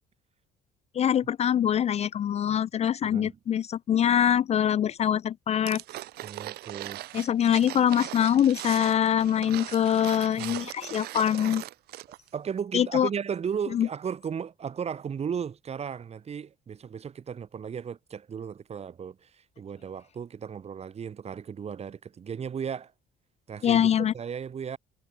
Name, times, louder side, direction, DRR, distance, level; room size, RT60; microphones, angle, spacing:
voice 1, 0.9-5.8 7.1-11.6 12.7-13.1 13.7-13.9 23.6-24.1, left 9 dB, 40° left, 0.4 m, -24 dB
voice 2, 3.0-3.4 6.2-7.0 10.4-10.6 12.3-22.9 23.5-24.8, right 7 dB, 40° right, 2.2 m, -35 dB
sound 1, 5.7-12.3 12.6-12.7, right 16 dB, 70° right, 0.7 m, -39 dB
cardioid pair, 110°, 17 cm